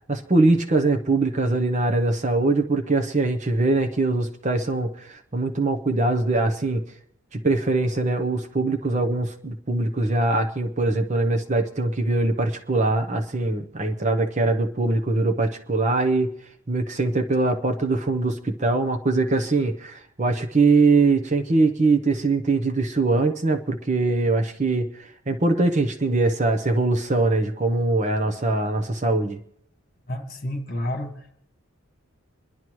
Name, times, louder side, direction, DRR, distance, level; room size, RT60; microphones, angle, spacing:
voice 1, 0.1-6.8 7.3-16.3 16.7-29.4, right 3 dB, 35° right, 7 dB, 0.8 m, -22 dB
voice 2, 30.1-31.3, left 1 dB, 45° left, 3 dB, 1.7 m, -30 dB
29.0 x 11.0 x 3.1 m, 0.74 s
head